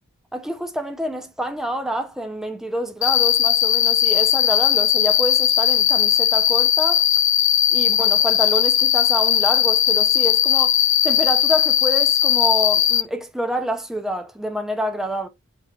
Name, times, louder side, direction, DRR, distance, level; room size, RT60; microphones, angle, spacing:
voice 1, 0.3-7.1 7.7-10.8 11.0-15.3, equal, ahead, 0.5 m, -27 dB
Cricket, 3.0-13.0, left 11 dB, 60° left, 0.5 m, -18 dB
6.5 x 3.2 x 2.3 m
head